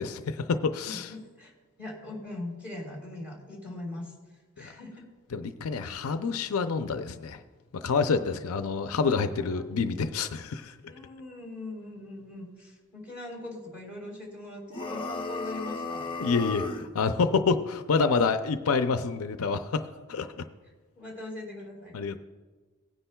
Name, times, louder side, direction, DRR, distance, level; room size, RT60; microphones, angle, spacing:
voice 1, 0.0-1.1 4.6-4.7 5.3-7.4 7.7-10.7 16.2-16.7 16.9-20.3 21.9-22.2, left 5 dB, 70° left, 8 dB, 0.5 m, -27 dB
voice 2, 0.8-1.5 1.8-4.1 4.6-5.0 7.9-8.3 9.4-9.5 10.9-16.1 21.0-21.9, left 2 dB, 5° right, -3 dB, 3.5 m, -41 dB
sound 1, 14.7-16.9, left 3 dB, 25° left, 0.7 m, -34 dB
18.0 x 9.9 x 2.3 m, 1.4 s
head